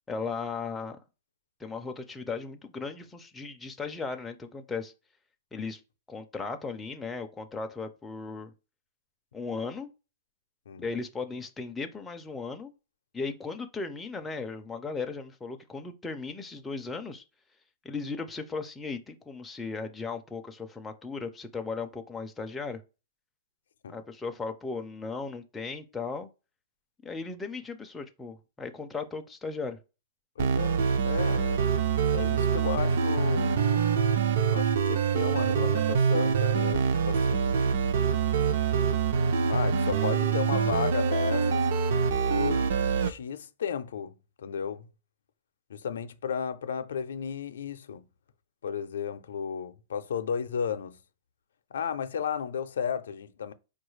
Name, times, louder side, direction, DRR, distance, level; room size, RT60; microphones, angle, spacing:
voice 1, 0.1-1.0 1.6-4.9 5.5-5.8 6.1-8.5 9.3-9.9 10.8-12.7 13.1-17.2 17.8-22.8 23.9-26.3 27.0-29.8, left 4 dB, 5° left, 0.3 m, -36 dB
voice 2, 30.4-31.6 32.1-33.6 34.5-37.8 39.5-41.7 42.2-42.7 43.0-44.8 45.7-48.1 48.6-51.0 51.7-53.5, left 7 dB, 85° left, 0.4 m, -34 dB
sound 1, 30.4-43.1, right 6 dB, 60° right, 0.4 m, -25 dB
4.8 x 2.3 x 3.1 m
supercardioid pair, 170°, 0 cm